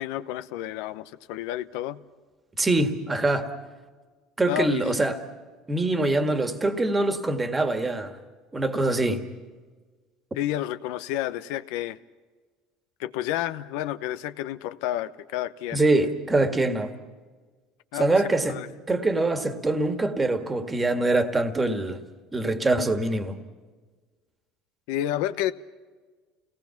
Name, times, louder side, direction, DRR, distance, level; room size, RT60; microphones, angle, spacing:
voice 1, 0.0-2.0 4.5-4.9 10.4-12.0 13.0-15.8 17.9-18.1 18.5-18.7 24.9-25.5, left 13 dB, 80° left, 0.9 m, -30 dB
voice 2, 2.6-3.5 4.4-5.2 5.7-8.1 8.5-9.3 15.7-16.9 18.0-18.6 18.9-22.0 22.3-23.4, right 2 dB, 15° right, 1.8 m, -24 dB
29.0 x 18.5 x 5.9 m
supercardioid pair, 125°, 0 cm